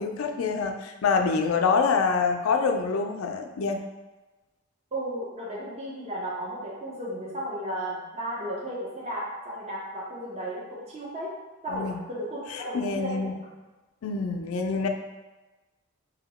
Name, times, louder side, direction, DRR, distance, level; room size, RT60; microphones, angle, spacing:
voice 1, 0.0-3.8 11.7-12.0 12.5-13.3 14.0-14.9, left 5 dB, 70° left, 4 dB, 0.4 m, -26 dB
voice 2, 4.9-11.3 11.6-13.3, right 1 dB, 30° right, -6 dB, 0.7 m, -34 dB
2.8 x 2.7 x 4.0 m, 1.2 s
head